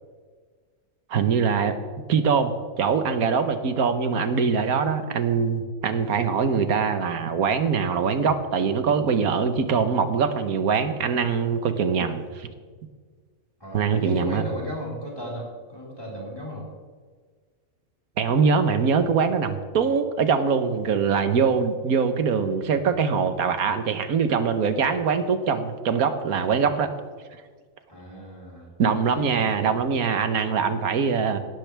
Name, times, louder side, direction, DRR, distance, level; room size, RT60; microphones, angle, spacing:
voice 1, 1.1-1.7 2.1-12.5 13.7-14.4 18.2-26.9 28.8-31.4, right 6 dB, 90° right, 9 dB, 1.5 m, -23 dB
voice 2, 13.6-16.7 27.9-28.7 29.1-29.8, equal, 15° left, -4 dB, 4.1 m, -35 dB
17.5 x 13.5 x 3.4 m, 1.6 s
omnidirectional pair, 1.5 m